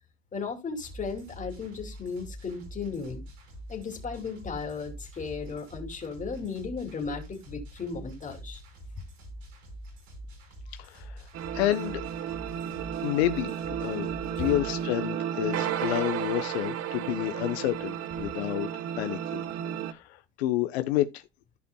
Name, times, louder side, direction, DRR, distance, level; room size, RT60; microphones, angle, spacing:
voice 1, 0.3-3.3 3.7-8.6, left 5 dB, 25° left, 2.7 m, -35 dB
sound 1, 0.8-14.9, right 1 dB, 80° right, 4.8 m, -45 dB
voice 2, 10.7-11.2 11.5-12.0 13.0-18.7 19.0-19.4 19.9-21.2, left 14 dB, 85° left, 0.8 m, -29 dB
sound 2, 11.3-19.9, right 9 dB, 50° right, 1.0 m, -33 dB
14.5 x 5.3 x 2.2 m
supercardioid pair, 100°, 31 cm